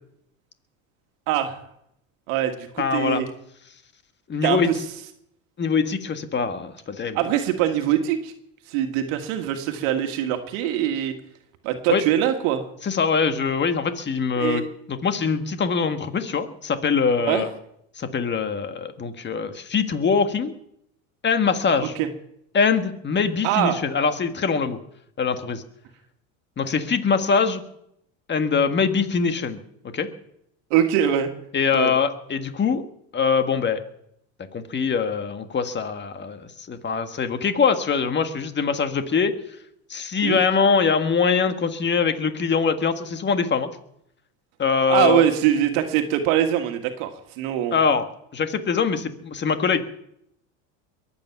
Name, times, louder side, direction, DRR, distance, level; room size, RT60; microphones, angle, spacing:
voice 1, 1.3-1.6 2.3-3.3 4.4-4.8 7.2-8.3 8.7-11.1 11.6-12.6 14.4-14.6 17.3-17.5 21.8-22.1 23.4-23.8 30.7-31.3 31.7-31.9 40.2-40.4 44.9-47.8, right 11 dB, 75° right, 6 dB, 1.8 m, -23 dB
voice 2, 2.8-3.2 4.3-4.7 5.6-7.2 11.9-12.0 12.8-14.6 14.9-17.5 18.0-20.5 21.2-21.9 22.5-24.8 25.2-25.6 26.6-27.6 28.3-29.6 29.9-30.1 31.5-32.8 33.1-33.8 34.5-39.3 39.9-43.7 44.6-45.2 47.7-48.1 48.3-49.9, left 5 dB, 25° left, 8 dB, 1.7 m, -23 dB
22.5 x 8.8 x 5.9 m, 0.74 s
supercardioid pair, 105°, 40 cm